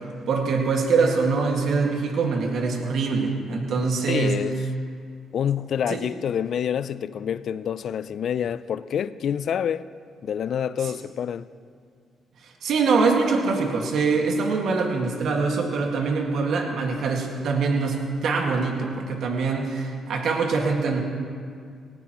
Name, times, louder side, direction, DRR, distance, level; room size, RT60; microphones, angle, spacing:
voice 1, 0.3-4.4 5.9-6.0 12.6-21.0, right 4 dB, 70° right, 1.9 m, -23 dB
voice 2, 4.1-4.6 5.3-9.8 10.2-11.5, left 8 dB, 65° left, 0.4 m, -27 dB
18.0 x 18.0 x 3.1 m
cardioid pair, 90°, 0 cm